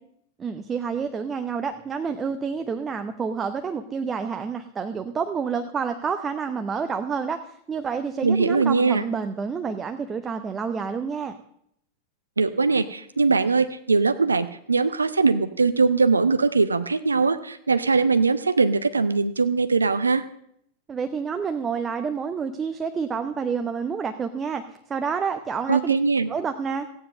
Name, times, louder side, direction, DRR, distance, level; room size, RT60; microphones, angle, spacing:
voice 1, 0.4-11.4 20.9-26.0 26.3-26.9, right 6 dB, 20° right, 8 dB, 0.8 m, -29 dB
voice 2, 8.2-9.0 12.4-20.2 25.7-26.3, right 4 dB, 75° right, 11 dB, 0.6 m, -21 dB
15.0 x 9.6 x 6.5 m, 0.73 s
figure-of-eight pair, 90°, 0 cm